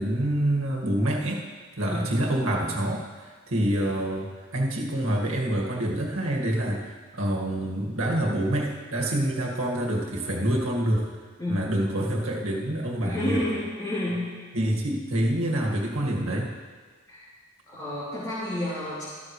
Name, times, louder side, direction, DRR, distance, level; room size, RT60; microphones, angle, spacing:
voice 1, 0.0-1.4 1.8-11.1 11.5-13.4 14.5-16.5, right 1 dB, 90° right, -2 dB, 2.0 m, -27 dB
voice 2, 13.0-14.3 17.1-17.2 17.7-19.0, left 1 dB, 20° left, -14 dB, 3.3 m, -30 dB
13.5 x 13.5 x 3.3 m, 1.5 s
head